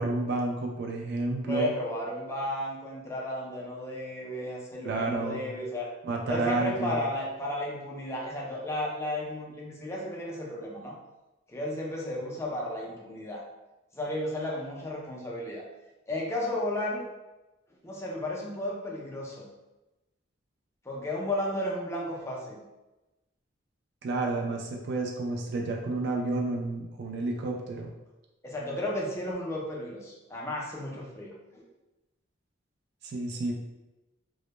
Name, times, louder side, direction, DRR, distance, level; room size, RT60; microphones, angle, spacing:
voice 1, 0.0-1.7 4.8-5.4 6.0-7.0 24.0-27.9 33.0-33.5, right 2 dB, 55° right, 1 dB, 0.3 m, -30 dB
voice 2, 1.5-5.9 6.3-11.0 11.5-13.4 13.9-15.6 16.1-17.1 17.8-19.5 20.9-22.6 28.4-31.6, left 1 dB, 15° left, -2 dB, 0.4 m, -33 dB
2.1 x 2.0 x 2.9 m, 1.0 s
head